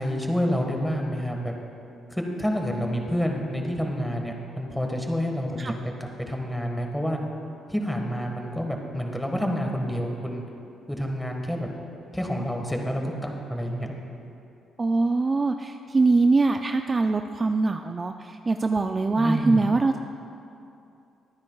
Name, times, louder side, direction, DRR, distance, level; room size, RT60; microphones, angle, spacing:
voice 1, 0.0-1.5 2.1-7.2 7.7-10.4 10.9-11.7 12.1-13.9 19.2-19.7, equal, 5° left, 2 dB, 1.6 m, -28 dB
voice 2, 14.8-20.0, right 3 dB, 30° right, 6 dB, 0.4 m, -23 dB
23.0 x 9.7 x 2.4 m, 2.7 s
cardioid pair, 90°, 0 cm